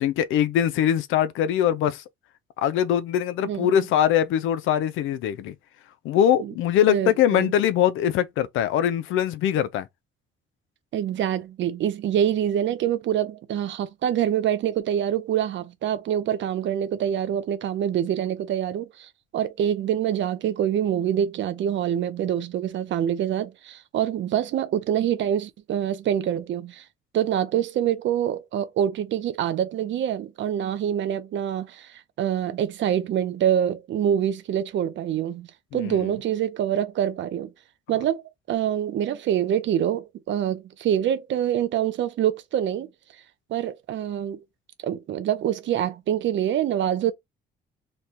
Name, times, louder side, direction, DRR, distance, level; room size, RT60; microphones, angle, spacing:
voice 1, 0.0-2.0 2.6-5.5 6.0-9.9 35.7-36.1, left 10 dB, 85° left, 0.5 m, -22 dB
voice 2, 6.9-7.5 10.9-26.8 27.1-37.5 37.9-38.2 38.5-42.9 43.5-44.4 44.8-47.1, right 10 dB, 70° right, 0.7 m, -25 dB
3.2 x 2.2 x 4.1 m
cardioid pair, 90°, 20 cm